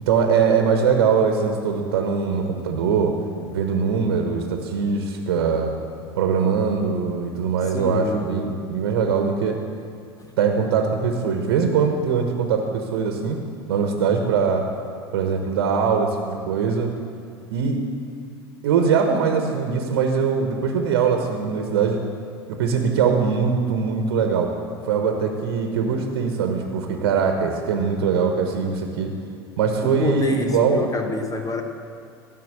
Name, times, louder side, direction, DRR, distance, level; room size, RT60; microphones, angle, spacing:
voice 1, 0.0-3.2 3.5-5.8 6.1-9.6 10.4-13.4 13.7-14.7 15.1-16.9 17.5-17.8 18.6-22.0 22.5-24.5 24.8-29.1 29.6-30.9, right 6 dB, 65° right, 4 dB, 1.2 m, -22 dB
voice 2, 7.7-8.5 10.2-10.3 29.8-31.6, left 4 dB, 25° left, 5 dB, 1.1 m, -27 dB
14.0 x 6.3 x 7.7 m, 2.4 s
figure-of-eight pair, 75°, 13 cm